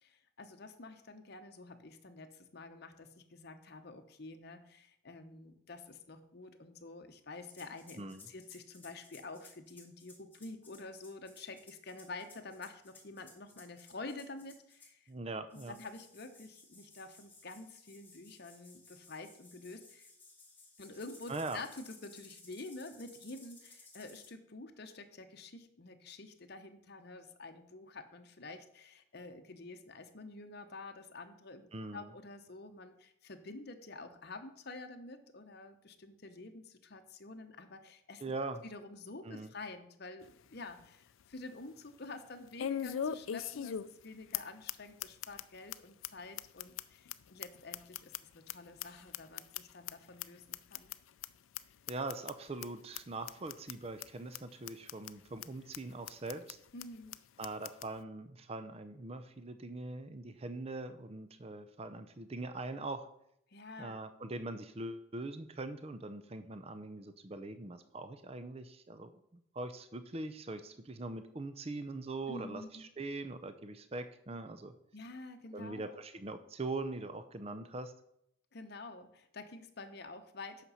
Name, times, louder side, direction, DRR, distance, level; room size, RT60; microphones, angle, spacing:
voice 1, 0.0-15.1 15.5-20.1 20.8-38.2 38.6-50.9 56.7-57.2 63.5-64.0 72.3-72.9 74.9-76.0 78.5-80.6, left 3 dB, 50° left, 7 dB, 0.9 m, -49 dB
sound 1, 7.4-15.1 15.5-24.3, left 3 dB, 10° left, 2.0 m, -58 dB
voice 2, 15.1-15.7 21.3-21.6 31.7-32.1 38.2-38.6 39.3-39.5 51.9-56.6 57.4-63.1 63.8-69.2 69.5-74.7 75.5-77.9, right 2 dB, 30° right, 11 dB, 0.5 m, -42 dB
sound 2, 40.2-40.3 40.8-40.9 42.6-44.1 44.3-44.4 44.7-44.8 45.0-45.4 45.7-45.8 46.0-46.1 46.4-48.5 48.8-49.9 50.2-50.3 50.5-51.0 51.2-51.3 51.6-51.7 51.9-52.3 52.6-52.7 53.0-53.1 53.3-53.7 54.0-54.1 54.3-54.4 54.7-55.1 55.4-55.5 55.7-55.8 56.1-56.5 56.8-56.9 57.1-57.2 57.4-57.9, left 9 dB, 75° left, 0.4 m, -39 dB
8.5 x 6.0 x 5.6 m, 0.75 s
head